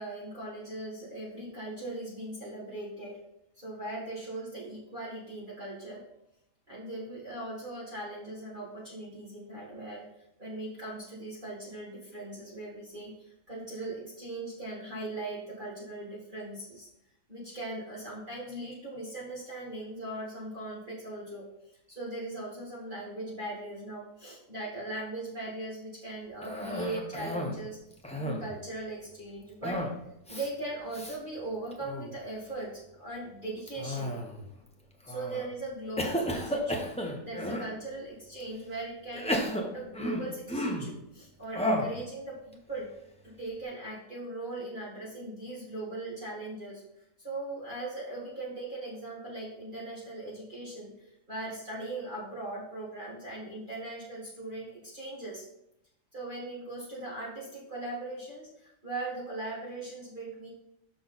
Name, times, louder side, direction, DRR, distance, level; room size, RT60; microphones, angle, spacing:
voice 1, 0.0-3.2 3.6-6.0 6.7-10.0 10.4-16.9 17.3-21.5 21.9-27.8 28.2-29.8 30.3-34.2 35.1-42.9 43.2-55.5 56.1-60.5, right 2 dB, 30° right, -7 dB, 1.8 m, -39 dB
Cough, 26.4-27.6 27.9-28.6 29.6-30.0 30.3-30.5 30.9-31.2 31.7-32.1 33.7-34.5 35.1-35.5 36.0-37.7 38.4-38.5 39.1-40.9 41.5-42.0, equal, 5° left, 0.5 m, -33 dB
6.6 x 5.8 x 4.0 m, 0.80 s
omnidirectional pair, 1.8 m